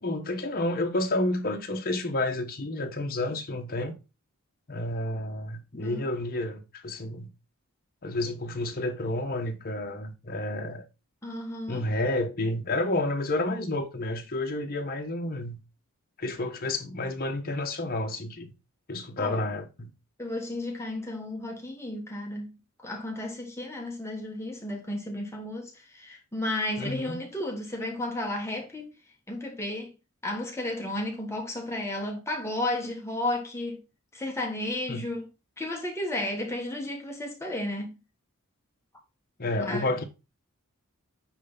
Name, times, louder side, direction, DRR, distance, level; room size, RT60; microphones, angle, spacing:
voice 1, 0.0-3.9 4.7-7.3 8.0-10.8 11.7-15.6 16.2-18.5 18.9-19.9 26.8-27.2 34.9-35.1 39.4-40.0, left 2 dB, 45° left, 1.2 m, -30 dB
voice 2, 11.2-11.8 19.2-19.4 20.2-22.6 22.8-28.9 29.3-29.9 30.2-33.8 34.1-35.3 35.6-37.9 39.5-40.0, left 1 dB, 10° left, 1.4 m, -33 dB
9.3 x 3.4 x 4.0 m
head